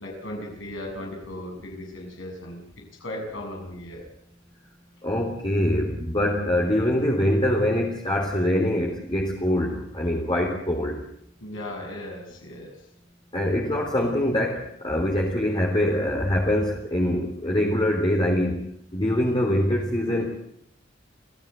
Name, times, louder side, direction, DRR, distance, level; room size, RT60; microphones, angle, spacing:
voice 1, 0.0-2.6 3.0-4.0 11.4-12.7, left 1 dB, 75° left, 0 dB, 7.3 m, -36 dB
voice 2, 5.0-11.0 13.3-18.6 18.9-20.3, left 1 dB, 25° left, -1 dB, 3.5 m, -24 dB
28.0 x 16.5 x 8.2 m, 0.72 s
head